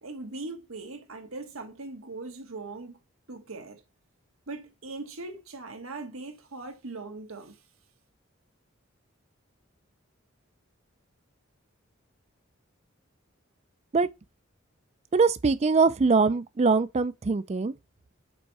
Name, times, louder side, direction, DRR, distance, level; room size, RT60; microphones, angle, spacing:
voice 1, 0.0-3.0 3.3-3.8 4.5-7.6, right 3 dB, 85° right, 1.4 m, -40 dB
voice 2, 15.1-17.7, right 4 dB, 30° right, 0.4 m, -22 dB
5.3 x 4.1 x 4.7 m
head